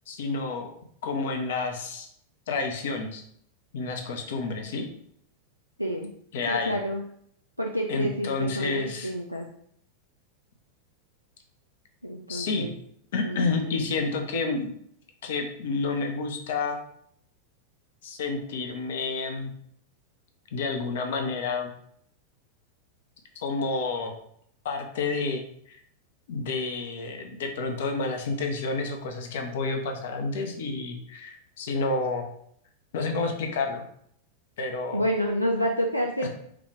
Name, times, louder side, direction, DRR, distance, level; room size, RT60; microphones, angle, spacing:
voice 1, 0.1-0.7 1.0-2.1 2.5-3.2 3.7-4.9 6.3-6.8 7.9-9.1 12.3-12.7 13.1-14.7 15.2-16.8 18.0-19.5 20.5-21.7 23.4-24.1 24.6-25.8 26.3-32.3 32.9-33.9 34.6-35.0 36.2-36.3, left 3 dB, 55° left, 4 dB, 0.7 m, -29 dB
voice 2, 6.5-7.0 7.6-9.4 12.0-12.7 13.2-13.5 34.9-36.3, equal, 90° left, 0 dB, 0.3 m, -28 dB
4.9 x 2.3 x 3.2 m, 0.67 s
figure-of-eight pair, 90°, 0 cm